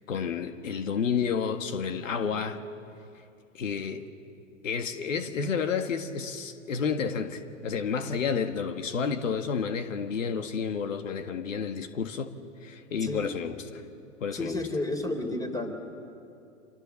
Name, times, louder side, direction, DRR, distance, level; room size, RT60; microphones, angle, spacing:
voice 1, 0.1-2.6 3.5-4.0 4.6-13.8 14.2-14.6, left 6 dB, 80° left, 7 dB, 1.8 m, -30 dB
voice 2, 14.3-15.7, left 2 dB, 10° left, 6 dB, 3.4 m, -31 dB
29.5 x 27.0 x 7.1 m, 2.6 s
hypercardioid pair, 125°, 38 cm